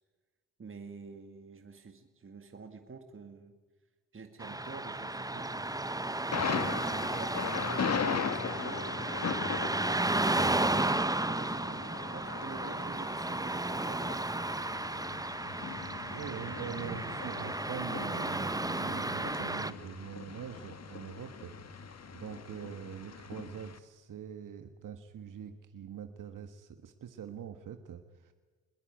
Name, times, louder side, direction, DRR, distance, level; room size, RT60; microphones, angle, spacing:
voice 1, 0.6-3.6 4.1-5.7 6.5-9.3 10.1-14.3, right 4 dB, 35° right, 6 dB, 2.1 m, -48 dB
Car passing by / Traffic noise roadway noise, 4.4-19.7, right 2 dB, 10° right, 1.1 m, -33 dB
Thunder, 6.3-23.8, left 6 dB, 45° left, 1.9 m, -39 dB
voice 2, 16.0-28.3, right 8 dB, 65° right, 8 dB, 1.6 m, -44 dB
21.5 x 21.0 x 9.3 m, 1.4 s
supercardioid pair, 55°, 35 cm